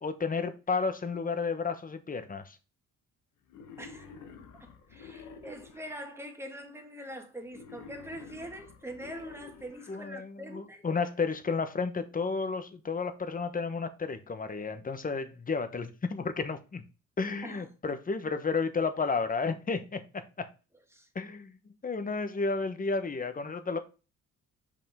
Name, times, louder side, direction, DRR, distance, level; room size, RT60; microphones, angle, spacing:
voice 1, 0.0-2.6 9.9-16.8 17.2-20.5 21.1-21.6 21.8-23.8, left 4 dB, 30° left, 1.0 m, -32 dB
Wild animals, 3.5-6.0 7.5-10.0, left 5 dB, 90° left, 1.2 m, -49 dB
voice 2, 3.8-4.1 4.6-10.8 17.4-17.7 20.9-21.1, equal, 10° right, 1.6 m, -43 dB
5.6 x 5.2 x 3.5 m
cardioid pair, 90°, 30 cm